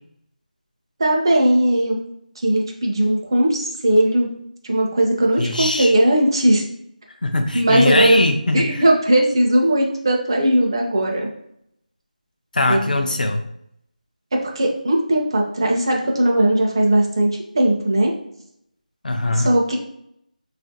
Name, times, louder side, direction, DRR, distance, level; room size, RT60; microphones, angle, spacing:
voice 1, 1.0-2.0 2.4-4.3 4.6-6.6 7.5-8.2 8.5-11.3 12.7-13.1 14.6-18.1 19.3-19.8, right 1 dB, 30° right, 0 dB, 0.4 m, -18 dB
voice 2, 5.4-5.9 7.2-8.7 12.5-13.4 19.0-19.5, left 2 dB, 75° left, 5 dB, 0.4 m, -21 dB
3.7 x 2.4 x 2.6 m, 0.74 s
figure-of-eight pair, 175°, 5 cm